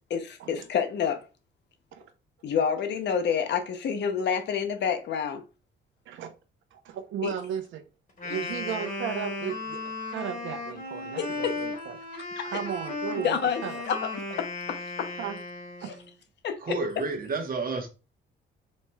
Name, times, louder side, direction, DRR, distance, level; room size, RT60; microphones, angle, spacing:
voice 1, 0.1-1.2 2.4-5.4 7.2-7.3 8.3-8.4 11.2-11.6 12.1-12.6 13.2-13.6 13.9-14.1 14.4-15.1 15.8-15.9 16.4-16.8, left 7 dB, 60° left, 0.7 m, -28 dB
voice 2, 6.7-7.8 8.2-9.8 10.1-12.0 12.4-13.8 15.2-15.4 15.8-16.0, right 8 dB, 80° right, 0.7 m, -35 dB
Wind instrument woodwind instrument, 8.1-16.1, left 2 dB, 40° left, 1.9 m, -36 dB
voice 3, 16.6-17.9, right 3 dB, 45° right, 1.1 m, -30 dB
4.2 x 3.0 x 2.3 m
cardioid pair, 90°, 20 cm